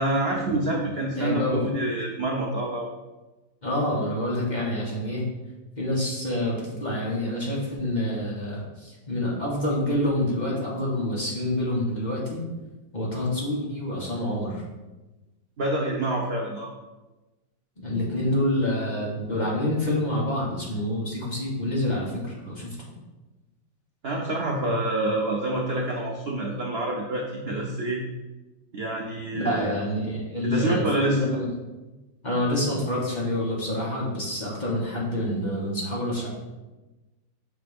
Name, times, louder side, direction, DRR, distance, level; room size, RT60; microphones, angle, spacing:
voice 1, 0.0-2.9 15.6-16.7 24.0-28.0 28.7-29.8 30.4-31.2, right 1 dB, 70° right, -1 dB, 0.5 m, -27 dB
voice 2, 1.2-1.6 3.6-5.3 5.8-12.4 12.9-14.6 17.8-22.8 29.3-31.5 32.2-36.3, left 1 dB, 25° left, -5 dB, 1.2 m, -27 dB
6.0 x 3.3 x 5.1 m, 1.1 s
omnidirectional pair, 2.0 m